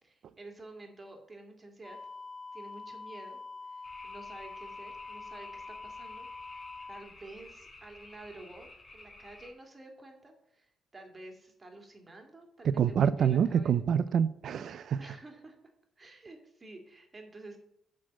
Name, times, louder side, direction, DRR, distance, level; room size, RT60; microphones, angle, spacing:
voice 1, 0.0-2.0 2.5-3.4 3.7-6.3 6.9-14.0 15.0-15.6 16.0-17.6, right 2 dB, 25° right, 2.2 m, -50 dB
sound 1, 1.8-7.0, left 3 dB, 15° left, 1.5 m, -45 dB
sound 2, 3.8-9.5, left 2 dB, 30° left, 2.3 m, -53 dB
voice 2, 12.6-15.0, right 8 dB, 65° right, 0.4 m, -26 dB
9.4 x 4.2 x 7.3 m
cardioid pair, 90°, 0 cm